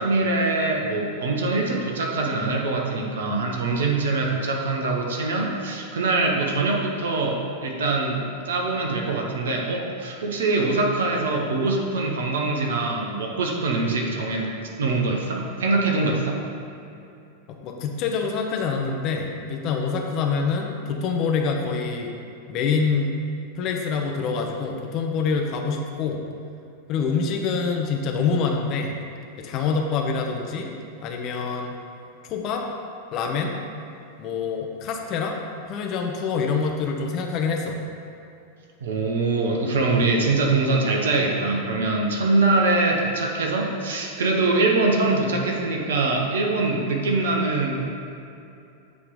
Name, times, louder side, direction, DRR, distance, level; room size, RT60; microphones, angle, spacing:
voice 1, 0.0-16.4 38.8-47.8, right 3 dB, 60° right, 1 dB, 0.9 m, -23 dB
voice 2, 17.5-22.1 22.5-23.1 23.6-26.2 26.9-28.9 29.4-30.7 31.0-31.8 32.2-32.6 33.1-33.6 34.2-35.4 35.7-37.8, left 5 dB, 40° left, 2 dB, 0.7 m, -26 dB
8.3 x 3.3 x 5.2 m, 2.7 s
figure-of-eight pair, 90°, 0 cm